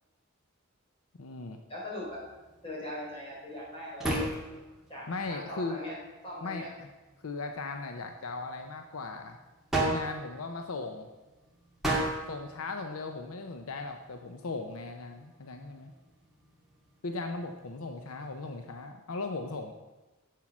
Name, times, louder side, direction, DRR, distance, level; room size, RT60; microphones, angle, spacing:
voice 1, 1.2-1.6 5.1-5.8 6.4-6.9 7.2-9.4 9.7-11.1 12.3-15.9 17.0-19.7, left 3 dB, 70° left, 5 dB, 0.7 m, -38 dB
voice 2, 1.7-2.2 2.6-4.2 4.9-6.0 6.2-6.7, left 1 dB, 25° left, -5 dB, 3.9 m, -40 dB
tire percussion solo, 2.0-18.9, right 2 dB, ahead, 2.3 m, -39 dB
10.0 x 7.6 x 6.0 m, 1.1 s
head